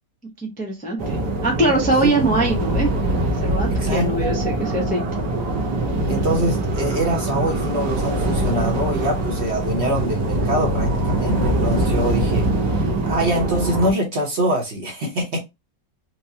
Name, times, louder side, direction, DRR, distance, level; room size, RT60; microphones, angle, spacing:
voice 1, 0.4-2.9 3.4-5.0, right 2 dB, 15° left, 0.3 m, -22 dB
sound 1, 1.0-13.9, right 2 dB, 70° right, 1.6 m, -23 dB
voice 2, 3.7-4.3 6.1-12.5 13.1-15.4, right 1 dB, 45° right, 1.0 m, -24 dB
4.5 x 2.1 x 2.7 m
omnidirectional pair, 1.9 m